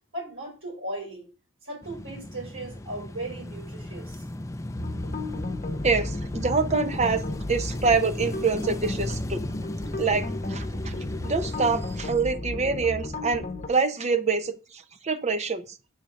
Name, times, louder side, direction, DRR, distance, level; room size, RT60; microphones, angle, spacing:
voice 1, 0.1-1.3 1.6-4.2, right 1 dB, 65° right, -4 dB, 4.8 m, -37 dB
sound 1, 1.8-12.1, left 1 dB, 15° left, 0.3 m, -35 dB
sound 2, 4.8-13.7, left 2 dB, 35° left, 0.9 m, -34 dB
voice 2, 5.8-7.2 7.5-9.4 10.0-10.9 11.2-15.6, right 4 dB, 30° right, 9 dB, 0.6 m, -26 dB
6.5 x 4.3 x 6.2 m, 0.35 s
head